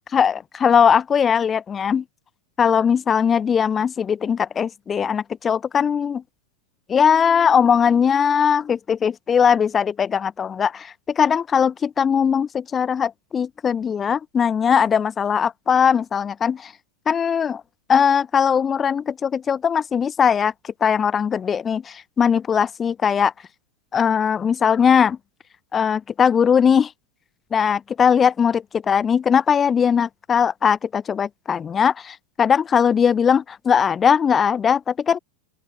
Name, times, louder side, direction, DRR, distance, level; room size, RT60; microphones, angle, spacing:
voice 1, 0.1-2.0 2.6-6.2 6.9-16.7 17.1-17.6 17.9-23.3 23.9-25.2 25.7-26.9 27.5-35.2, left 7 dB, 20° left, 0.3 m, -19 dB
open air
figure-of-eight pair, 90°, 0 cm